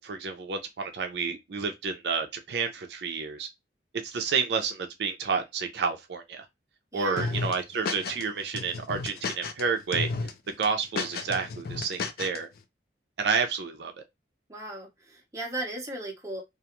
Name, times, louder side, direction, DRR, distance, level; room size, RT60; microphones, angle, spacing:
voice 1, 0.0-3.5 4.0-6.5 6.9-10.1 10.6-12.5 13.2-13.9, right 5 dB, 65° right, 0.4 m, -30 dB
voice 2, 6.9-7.4 14.5-16.4, right 2 dB, 15° right, 0.7 m, -36 dB
sound 1, 7.2-8.2 8.5-9.6 9.9-10.3 10.6-12.4, left 4 dB, 55° left, 0.4 m, -32 dB
2.4 x 2.2 x 2.9 m
head